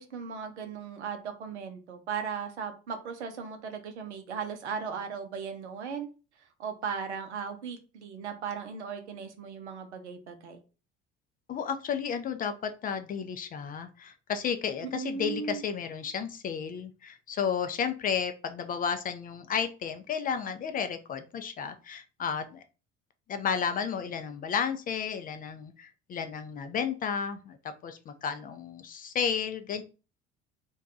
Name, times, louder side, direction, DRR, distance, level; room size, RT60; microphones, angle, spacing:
voice 1, 0.0-6.1 6.6-10.6 14.8-15.6, right 6 dB, 80° right, 6 dB, 0.6 m, -37 dB
voice 2, 11.5-22.6 23.3-29.8, left 7 dB, 25° left, 8 dB, 0.3 m, -32 dB
2.7 x 2.2 x 3.6 m, 0.34 s
figure-of-eight pair, 60°, 34 cm